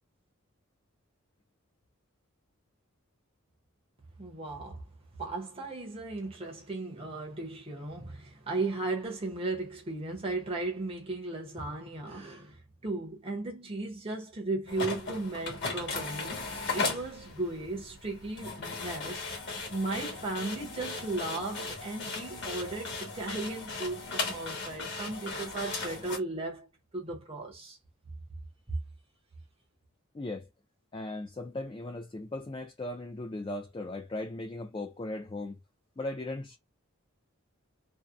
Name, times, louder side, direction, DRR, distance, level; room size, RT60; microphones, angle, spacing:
voice 1, 4.2-4.8 5.2-19.2 19.7-26.7 26.9-27.8 28.7-28.8, right 2 dB, 25° right, 0.6 m, -36 dB
sound 1, 14.7-26.2, left 3 dB, 50° left, 1.1 m, -37 dB
voice 2, 30.1-30.5 30.9-35.6 36.0-36.6, left 2 dB, 25° left, 0.3 m, -37 dB
2.7 x 2.0 x 2.4 m
head